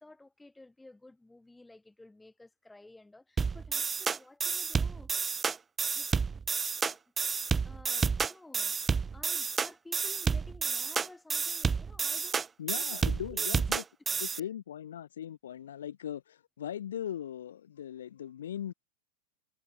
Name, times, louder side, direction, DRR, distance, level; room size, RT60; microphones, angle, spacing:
voice 1, 0.0-5.3 5.9-6.1 6.8-7.0 7.6-8.8 9.1-12.5 12.8-13.0 13.3-13.5 14.2-14.5, left 2 dB, 5° left, 7.4 m, -53 dB
sound 1, 3.4-14.4, right 5 dB, 15° right, 0.3 m, -30 dB
voice 2, 12.6-13.8 14.2-18.7, left 10 dB, 65° left, 0.7 m, -39 dB
figure-of-eight pair, 90°, 0 cm